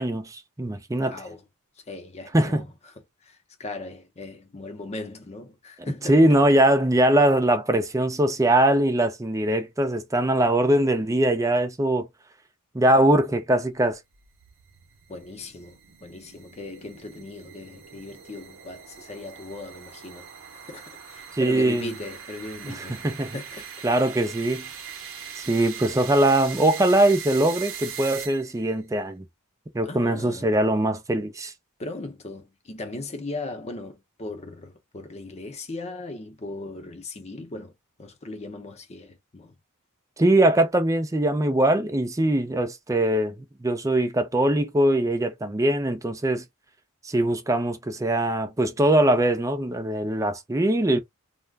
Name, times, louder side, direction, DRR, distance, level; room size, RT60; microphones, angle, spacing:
voice 1, 0.0-1.1 2.3-2.6 6.1-12.1 12.7-14.0 21.4-21.9 22.7-22.8 23.0-23.3 23.8-24.7 25.4-29.3 29.7-31.5 40.2-46.4 47.0-51.0, right 1 dB, 15° right, 0.5 m, -22 dB
voice 2, 1.0-1.5 1.8-6.3 15.1-23.7 29.8-30.5 31.8-37.7 38.0-39.6, left 2 dB, 30° left, 0.7 m, -38 dB
sound 1, 13.9-28.7, right 8 dB, 65° right, 0.7 m, -41 dB
2.4 x 2.2 x 3.3 m
head